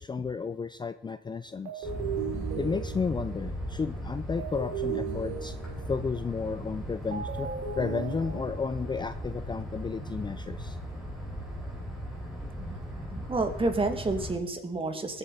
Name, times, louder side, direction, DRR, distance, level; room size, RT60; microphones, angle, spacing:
voice 1, 0.0-1.9 2.6-7.5 7.8-10.8, left 5 dB, 20° left, 13 dB, 0.4 m, -33 dB
sound 1, 1.6-9.3, right 7 dB, 85° right, 3.5 m, -38 dB
sound 2, 1.8-14.4, equal, ahead, 5.5 m, -38 dB
voice 2, 12.6-15.2, right 2 dB, 25° right, 5 dB, 2.3 m, -30 dB
20.5 x 8.2 x 4.2 m, 0.80 s
cardioid pair, 90°, 20 cm